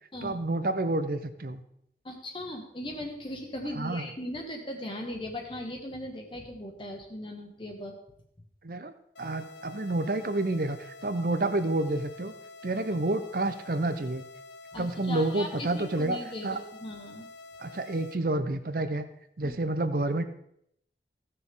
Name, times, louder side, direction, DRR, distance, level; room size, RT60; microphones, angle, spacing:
voice 1, 0.2-1.6 3.8-4.1 8.6-8.9 9.2-12.3 12.6-14.2 14.8-16.2 16.4-16.6 17.6-19.0 19.4-20.2, right 2 dB, 55° right, 10 dB, 0.7 m, -29 dB
voice 2, 2.0-8.0 14.7-17.3 19.4-19.5, left 1 dB, 30° left, 1 dB, 1.3 m, -38 dB
sound 1, 9.1-18.1, left 3 dB, 80° left, 0.7 m, -48 dB
16.0 x 6.7 x 3.6 m, 0.73 s
head